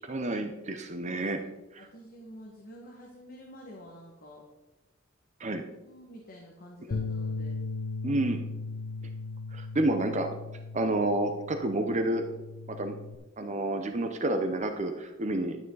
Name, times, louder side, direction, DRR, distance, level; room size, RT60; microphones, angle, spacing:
voice 1, 0.0-1.4 1.7-1.9 5.4-5.6 6.8-6.9 8.0-8.4 9.5-10.3 10.7-12.2 12.7-12.9 13.4-15.6, right 2 dB, 35° right, 6 dB, 0.7 m, -29 dB
voice 2, 1.1-1.5 1.8-4.4 5.8-7.6, equal, 45° left, -1 dB, 1.7 m, -49 dB
Bass guitar, 6.9-13.2, left 3 dB, 65° left, 0.6 m, -37 dB
12.0 x 9.0 x 4.0 m, 1.0 s
head